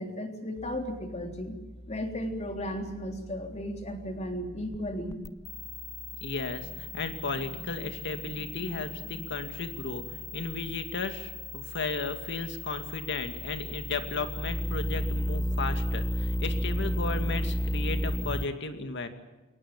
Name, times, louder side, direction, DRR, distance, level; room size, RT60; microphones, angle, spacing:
voice 1, 0.0-1.6 1.9-5.2, equal, 35° left, 4 dB, 3.5 m, -35 dB
sound 1, 0.6-18.4, left 1 dB, 15° left, 0.8 m, -35 dB
voice 2, 6.2-19.1, left 3 dB, 60° left, 8 dB, 2.3 m, -35 dB
23.5 x 19.0 x 8.7 m, 1.1 s
head